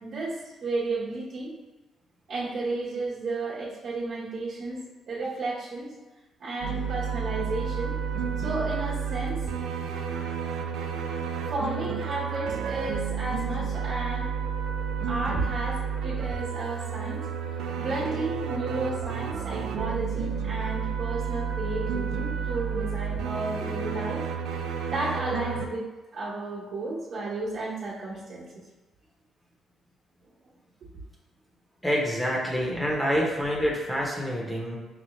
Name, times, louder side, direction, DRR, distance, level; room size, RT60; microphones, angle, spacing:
voice 1, 0.0-1.5 2.3-4.8 5.1-5.9 6.4-7.9 8.4-9.5 11.5-14.3 15.1-17.2 17.8-24.2 24.9-25.9 26.1-28.7, right 2 dB, 60° right, -10 dB, 1.1 m, -33 dB
sound 1, 6.6-25.7, right 6 dB, 85° right, 0.3 m, -31 dB
voice 2, 31.8-34.8, equal, 10° left, -3 dB, 0.9 m, -27 dB
5.4 x 2.4 x 3.1 m, 1.2 s
cardioid pair, 90°, 0 cm